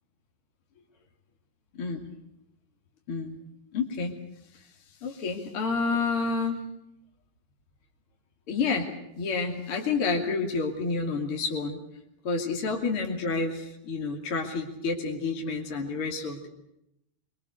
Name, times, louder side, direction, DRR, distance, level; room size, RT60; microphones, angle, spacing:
voice 1, 3.7-4.1 5.0-6.6 8.5-8.9 9.2-11.8 12.2-16.5, left 4 dB, 35° left, 1 dB, 2.7 m, -29 dB
25.0 x 25.0 x 6.7 m, 0.81 s
omnidirectional pair, 5.9 m